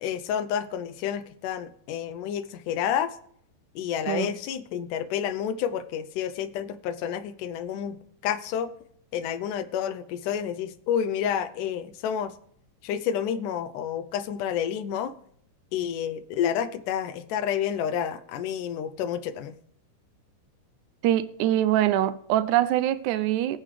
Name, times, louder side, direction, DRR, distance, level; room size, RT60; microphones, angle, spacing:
voice 1, 0.0-3.1 3.8-8.0 8.2-8.7 9.1-12.3 12.8-15.1 15.7-19.5, left 9 dB, 85° left, 2.2 m, -29 dB
voice 2, 21.0-23.6, right 12 dB, 80° right, 1.9 m, -24 dB
22.0 x 7.3 x 3.2 m
omnidirectional pair, 3.6 m